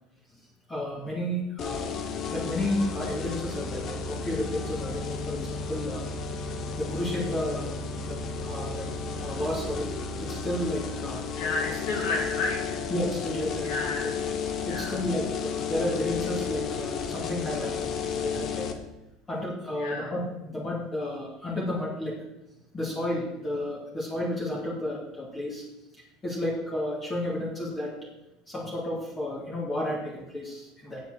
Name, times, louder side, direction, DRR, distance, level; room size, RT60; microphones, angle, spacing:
voice 1, 0.7-1.9 2.3-6.0 6.7-7.7 8.1-8.9 9.2-9.9 10.2-11.2 12.9-13.7 14.7-18.7 19.3-22.2 22.7-25.6 25.9-27.9 28.5-31.0, left 1 dB, 15° left, -4 dB, 2.5 m, -32 dB
sound 1, 1.6-18.7, left 5 dB, 40° left, 1.2 m, -33 dB
voice 2, 11.3-12.8 13.6-14.2 14.6-15.0 19.8-20.1, left 3 dB, 70° left, -3 dB, 2.8 m, -32 dB
8.5 x 7.9 x 7.7 m, 0.94 s
cardioid pair, 155°, 0 cm